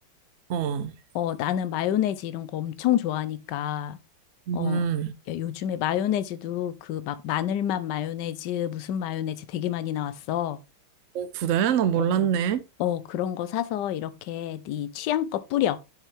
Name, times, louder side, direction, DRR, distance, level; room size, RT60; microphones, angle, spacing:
voice 1, 0.5-0.9 4.5-5.1 11.1-12.6, right 8 dB, 65° right, 0.7 m, -25 dB
voice 2, 1.1-4.0 4.5-4.8 5.3-10.6 12.0-12.3 12.8-15.8, left 11 dB, 70° left, 1.3 m, -28 dB
7.3 x 6.8 x 3.4 m
omnidirectional pair, 2.1 m